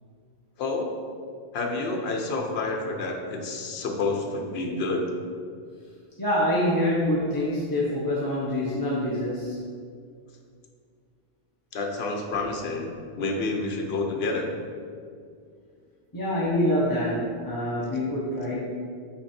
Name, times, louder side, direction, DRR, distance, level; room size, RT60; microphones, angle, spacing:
voice 1, 0.6-0.9 1.5-5.0 11.7-12.9 13.2-14.5, left 3 dB, 70° left, 2 dB, 1.1 m, -29 dB
voice 2, 6.2-9.6 16.1-18.6, left 1 dB, 20° left, -7 dB, 0.8 m, -26 dB
6.0 x 5.0 x 4.3 m, 2.2 s
omnidirectional pair, 1.1 m